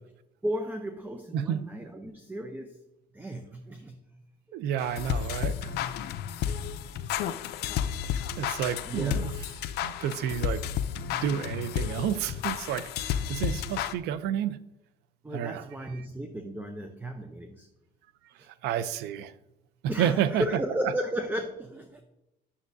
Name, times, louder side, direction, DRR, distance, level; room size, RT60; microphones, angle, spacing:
voice 1, 0.4-2.8 3.1-4.1 8.8-9.2 9.5-9.6 15.2-17.7 18.4-18.5 19.9-22.0, equal, 10° right, 6 dB, 0.7 m, -34 dB
voice 2, 1.3-1.6 4.5-5.7 8.4-9.3 9.8-10.6 11.2-14.6 15.3-15.6 18.6-19.3 19.8-20.4, right 9 dB, 85° right, 15 dB, 0.5 m, -30 dB
sound 1, 4.8-13.9, left 9 dB, 75° left, 0.5 m, -32 dB
9.8 x 7.0 x 2.6 m, 0.91 s
cardioid pair, 110°, 17 cm